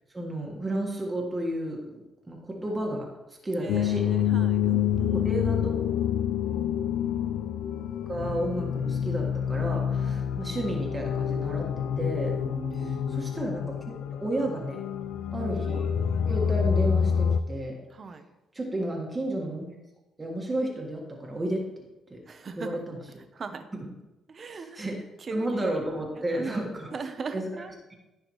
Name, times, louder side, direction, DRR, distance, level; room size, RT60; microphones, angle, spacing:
voice 1, 0.1-1.8 2.3-4.0 5.1-5.7 7.9-12.4 12.7-13.8 14.2-14.9 15.3-15.9 16.3-17.8 18.5-19.6 20.2-21.8 22.1-22.2 22.6-23.0 23.7-23.8 24.5-25.0 25.3-26.9 27.3-27.5, right 1 dB, 20° right, -1 dB, 1.7 m, -32 dB
voice 2, 3.6-5.4 10.0-10.3 12.4-13.3 17.9-18.2 22.3-22.8 23.3-23.7 24.3-24.9 25.2-25.7 26.2-27.7, right 4 dB, 45° right, 8 dB, 0.9 m, -39 dB
sound 1, 3.7-17.4, left 8 dB, 80° left, 0.4 m, -27 dB
14.5 x 4.9 x 3.1 m, 1.0 s
cardioid pair, 90°, 0 cm